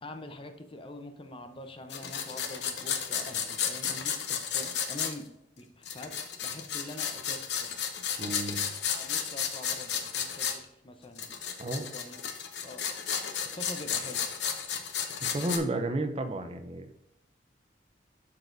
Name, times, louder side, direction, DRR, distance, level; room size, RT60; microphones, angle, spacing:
voice 1, 0.0-5.3 5.6-6.2 6.4-7.7 8.9-12.2 12.6-13.2 13.4-14.2, left 1 dB, 30° left, 7 dB, 0.6 m, -45 dB
sound 1, 1.9-5.2 5.8-10.6 11.2-15.6, left 7 dB, 70° left, 0.8 m, -33 dB
voice 2, 8.2-8.7 11.6-11.9 15.2-16.9, right 2 dB, 35° right, 7 dB, 0.6 m, -32 dB
11.5 x 4.0 x 2.6 m, 0.82 s
head